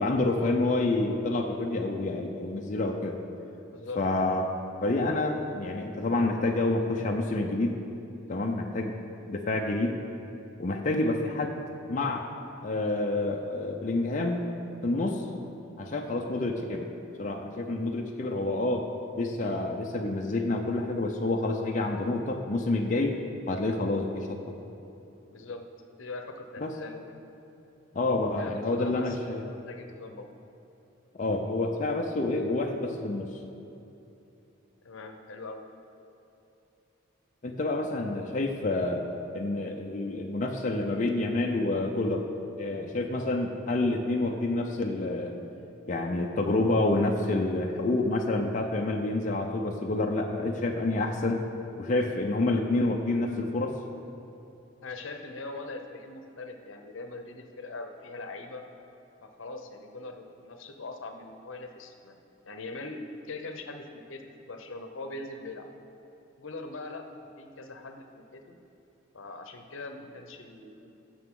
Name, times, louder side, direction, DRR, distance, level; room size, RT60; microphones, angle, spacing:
voice 1, 0.0-3.2 4.0-4.5 4.8-7.8 8.3-9.0 9.3-10.0 10.6-11.6 11.9-12.2 12.6-14.4 14.8-15.3 15.8-16.9 17.2-18.8 19.2-23.2 23.5-24.4 26.6-26.7 27.9-29.4 31.1-33.3 37.4-39.0 39.3-42.2 42.6-45.3 45.9-51.4 51.8-53.7, left 2 dB, 40° left, 1 dB, 0.5 m, -28 dB
voice 2, 3.6-4.0 25.3-25.7 26.0-27.0 28.4-29.2 29.5-30.3 34.8-35.6 54.8-58.6 59.2-64.2 64.5-65.7 66.4-67.1 67.4-68.6 69.1-70.9, left 3 dB, 75° left, 5 dB, 0.8 m, -41 dB
15.5 x 6.8 x 3.7 m, 2.8 s
head